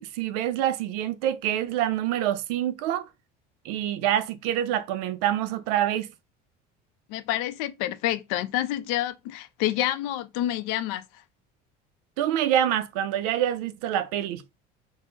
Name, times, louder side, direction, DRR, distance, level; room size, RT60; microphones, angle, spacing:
voice 1, 0.0-3.1 3.6-6.1 12.2-14.4, right 11 dB, 90° right, 0.5 m, -26 dB
voice 2, 7.1-11.0, left 13 dB, 80° left, 0.5 m, -28 dB
3.7 x 2.0 x 3.7 m
cardioid pair, 150°, 19 cm